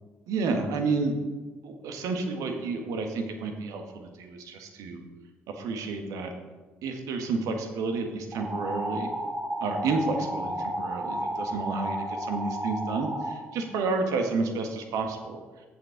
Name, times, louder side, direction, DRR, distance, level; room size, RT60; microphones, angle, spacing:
voice 1, 0.3-1.1 1.6-5.0 5.6-6.3 6.8-9.1 9.6-15.4, right 4 dB, 60° right, 5 dB, 1.4 m, -30 dB
sound 1, 8.3-13.3, right 1 dB, 20° right, 1.7 m, -32 dB
14.0 x 7.4 x 3.8 m, 1.3 s
figure-of-eight pair, 45°, 7 cm